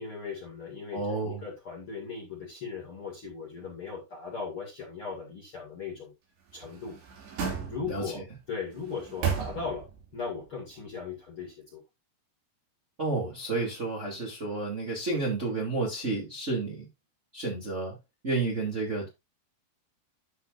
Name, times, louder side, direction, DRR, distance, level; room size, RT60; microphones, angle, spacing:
voice 1, 0.0-6.1 6.5-7.0 7.7-9.9 10.1-11.8, left 5 dB, 40° left, 2.3 m, -38 dB
voice 2, 0.9-1.5 7.9-8.2 13.0-16.9 17.3-17.9 18.2-19.1, right 3 dB, 20° right, 2.3 m, -31 dB
sound 1, 6.5-8.2 8.7-10.0 10.4-10.5, right 6 dB, 75° right, 4.8 m, -34 dB
12.0 x 6.8 x 2.6 m
omnidirectional pair, 4.9 m